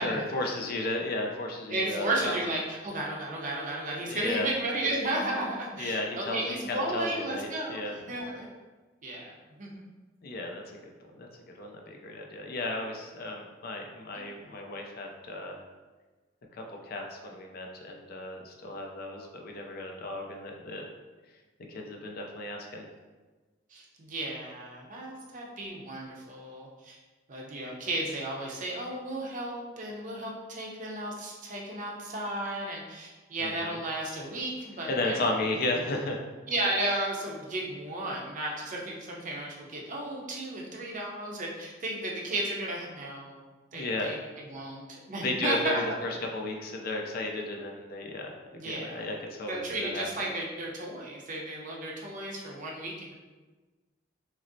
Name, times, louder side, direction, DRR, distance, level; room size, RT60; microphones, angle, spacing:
voice 1, 0.0-2.4 4.1-4.5 5.8-8.0 10.2-10.8 11.1-11.3 11.5-15.6 16.5-20.9 21.7-22.8 33.4-33.8 34.9-36.3 43.7-44.2 45.2-50.0, left 2 dB, 50° left, 1 dB, 0.5 m, -34 dB
voice 2, 1.7-8.5 9.0-9.8 14.0-14.6 23.7-27.0 27.3-35.4 36.5-43.4 43.7-45.8 48.5-49.1 49.5-53.1, right 1 dB, 40° right, -2 dB, 0.7 m, -34 dB
6.0 x 2.0 x 2.7 m, 1.3 s
head